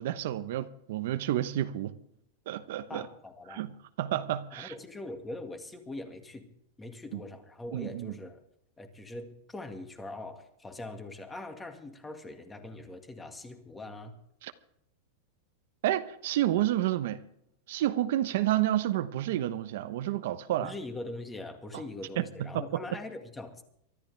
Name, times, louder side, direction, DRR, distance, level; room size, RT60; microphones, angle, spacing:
voice 1, 0.0-2.0 2.5-3.1 3.5-3.7 4.0-4.7 7.1-7.2 7.7-8.2 14.4-14.5 15.8-17.2 17.7-20.7 22.2-22.8, right 13 dB, 65° right, 1.0 m, -30 dB
voice 2, 2.9-3.6 4.6-6.5 6.8-8.4 8.8-14.1 20.6-23.6, left 2 dB, 10° left, 2.0 m, -42 dB
24.0 x 13.5 x 3.4 m
supercardioid pair, 165°, 0 cm